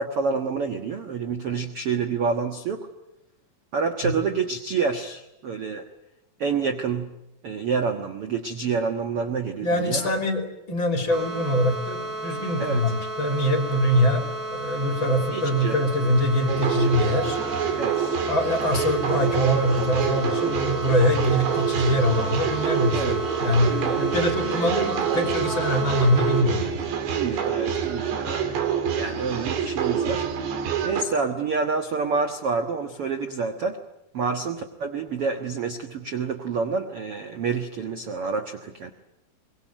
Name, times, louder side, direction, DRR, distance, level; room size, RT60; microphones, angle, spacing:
voice 1, 0.0-2.9 3.7-5.8 6.4-7.1 7.4-10.1 12.6-12.8 15.3-15.8 17.8-18.1 22.9-23.2 23.7-24.0 27.1-28.6 28.9-30.3 30.8-33.8 34.1-38.9, right 5 dB, 60° right, 6 dB, 1.5 m, -28 dB
voice 2, 9.6-17.4 18.3-26.8, equal, 30° left, 5 dB, 3.4 m, -23 dB
sound 1, 11.1-26.4, right 2 dB, 25° right, 4.9 m, -33 dB
sound 2, 16.5-31.0, right 7 dB, 85° right, 4.6 m, -27 dB
24.0 x 22.0 x 8.9 m, 0.89 s
omnidirectional pair, 4.7 m